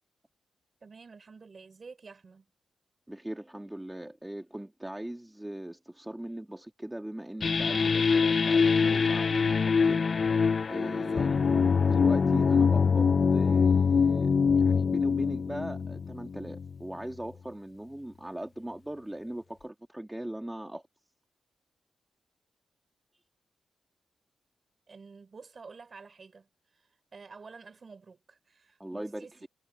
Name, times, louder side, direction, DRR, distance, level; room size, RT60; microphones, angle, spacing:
voice 1, 0.8-2.5 11.1-11.5 24.9-29.3, right 4 dB, 45° right, 3.4 m, -50 dB
voice 2, 3.1-10.0 10.7-11.3 11.8-20.8 28.8-29.5, right 1 dB, 10° right, 2.2 m, -40 dB
sound 1, 7.4-16.8, left 5 dB, 50° left, 0.5 m, -24 dB
cardioid pair, 95°, 0 cm